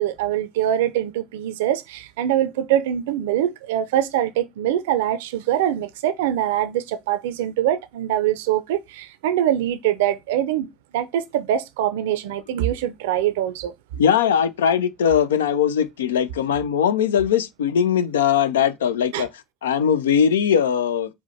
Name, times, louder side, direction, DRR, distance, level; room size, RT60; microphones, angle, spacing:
voice 1, 0.0-10.7 10.9-13.7 19.1-19.3, right 11 dB, 75° right, 0.4 m, -23 dB
voice 2, 14.0-19.3 19.6-21.1, left 8 dB, 80° left, 0.3 m, -20 dB
4.7 x 2.1 x 4.0 m
figure-of-eight pair, 60°, 0 cm